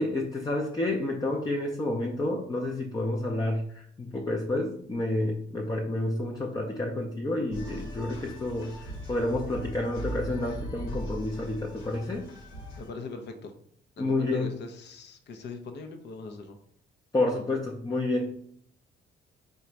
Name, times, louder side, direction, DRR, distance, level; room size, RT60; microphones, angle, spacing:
voice 1, 0.0-12.3 14.0-14.5 17.1-18.3, left 2 dB, 20° left, 0 dB, 0.5 m, -29 dB
sound 1, 7.5-12.9, right 1 dB, 90° left, 1.1 m, -39 dB
voice 2, 12.8-13.5 14.0-16.6, left 3 dB, 60° left, 6 dB, 0.7 m, -41 dB
3.9 x 2.2 x 4.5 m, 0.65 s
cardioid pair, 90°, 20 cm